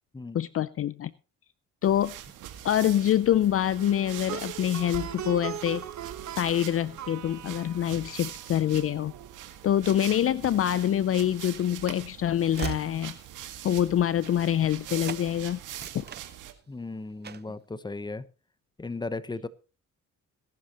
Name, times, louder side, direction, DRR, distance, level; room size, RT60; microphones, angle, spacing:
voice 1, 0.3-1.1 1.8-2.2 2.6-5.8 6.4-9.1 9.6-13.1 13.6-15.6 15.9-16.0, left 11 dB, 50° left, 17 dB, 0.5 m, -25 dB
sound 1, 1.8-16.5, right 11 dB, 85° right, 1.9 m, -43 dB
Plucked string instrument, 3.7-9.0, right 10 dB, 65° right, 1.4 m, -40 dB
Train / Slam, 11.2-14.8 15.0-15.3 15.6-16.8 17.2-17.6, right 8 dB, 35° right, 0.7 m, -41 dB
voice 2, 16.7-18.2 18.8-19.5, left 3 dB, 15° left, 15 dB, 1.0 m, -36 dB
20.0 x 11.5 x 3.0 m, 0.32 s
cardioid pair, 90°, 30 cm